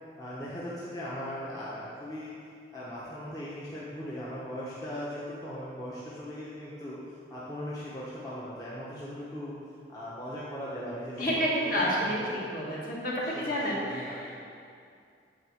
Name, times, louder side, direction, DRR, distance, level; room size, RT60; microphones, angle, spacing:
voice 1, 0.2-2.3 2.7-7.0 7.3-9.6 9.9-12.4 13.2-14.4, equal, 20° left, -8 dB, 1.0 m, -39 dB
voice 2, 11.2-14.4, equal, 45° left, -5 dB, 1.8 m, -30 dB
8.9 x 4.2 x 6.3 m, 2.4 s
head